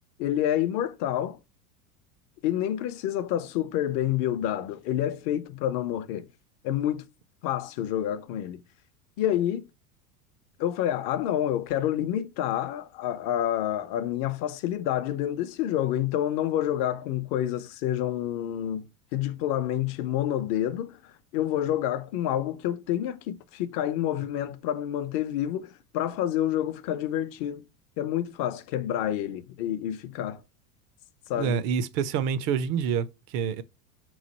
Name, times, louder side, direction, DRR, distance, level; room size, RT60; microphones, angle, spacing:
voice 1, 0.2-1.4 2.4-6.3 6.6-7.0 7.4-8.6 9.2-9.6 10.6-18.9 19.1-21.0 21.3-27.6 28.0-30.4 31.3-31.6, left 11 dB, 50° left, 0.6 m, -28 dB
voice 2, 31.4-33.6, right 7 dB, 50° right, 0.5 m, -27 dB
3.7 x 3.1 x 4.1 m
hypercardioid pair, 105°, 47 cm